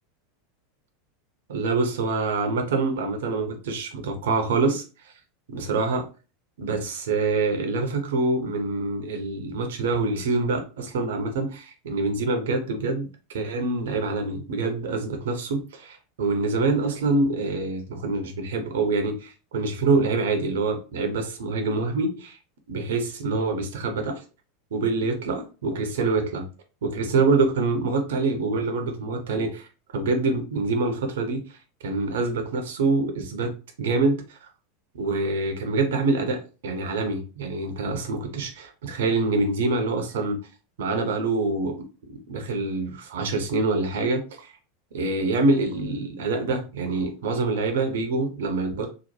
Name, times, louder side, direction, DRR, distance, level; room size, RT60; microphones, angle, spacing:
voice 1, 1.5-4.8 5.5-6.1 6.6-22.4 22.7-24.2 24.7-26.5 26.8-29.7 29.9-31.4 31.8-34.4 35.0-40.4 40.8-41.8 42.1-44.5 44.9-48.9, right 3 dB, 65° right, 0.6 m, -25 dB
2.9 x 2.0 x 3.0 m
figure-of-eight pair, 85°, 0 cm